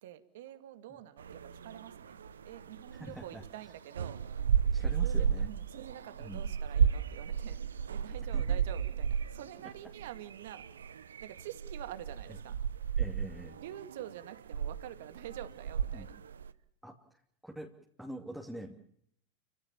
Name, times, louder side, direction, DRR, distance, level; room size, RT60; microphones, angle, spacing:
voice 1, 0.0-2.2 2.4-4.2 5.0-10.7 11.2-12.6 13.6-16.1, right 12 dB, 65° right, 10 dB, 2.2 m, -47 dB
sound 1, 1.2-3.7 3.9-16.5, right 7 dB, 80° right, 0.9 m, -33 dB
voice 2, 2.9-3.4 4.7-5.5 6.2-6.4 8.3-8.6 12.3-12.4 13.0-13.6 15.9-16.1 16.8-17.0 17.4-18.8, right 1 dB, 5° right, 1 dB, 2.7 m, -45 dB
28.5 x 16.5 x 7.2 m, 0.69 s
hypercardioid pair, 90°, 0 cm